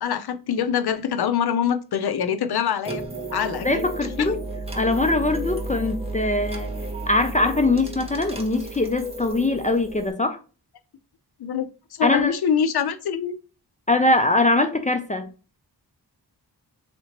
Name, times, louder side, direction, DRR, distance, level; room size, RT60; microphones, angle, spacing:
voice 1, 0.0-3.0 3.3-3.9 4.2-4.3 11.4-11.7 12.0-13.3, left 8 dB, 65° left, 0.6 m, -24 dB
sound 1, 2.8-10.1, right 2 dB, 15° right, 0.7 m, -33 dB
voice 2, 3.6-4.4 4.7-6.7 7.1-10.4 12.0-12.3 13.9-15.6, left 2 dB, 20° left, 0.4 m, -22 dB
3.3 x 2.9 x 2.9 m
wide cardioid pair, 80°, 41 cm